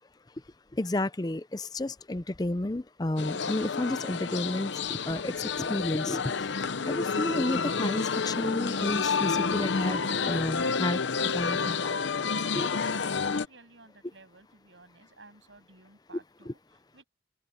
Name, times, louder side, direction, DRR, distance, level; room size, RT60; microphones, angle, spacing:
voice 1, 0.7-6.5 6.8-11.0 11.3-11.9 12.5-12.7, left 1 dB, 20° left, 0.5 m, -31 dB
sound 1, 3.2-13.5, left 5 dB, 80° left, 0.8 m, -29 dB
voice 2, 12.6-17.1, right 3 dB, 85° right, 8.0 m, -55 dB
open air
head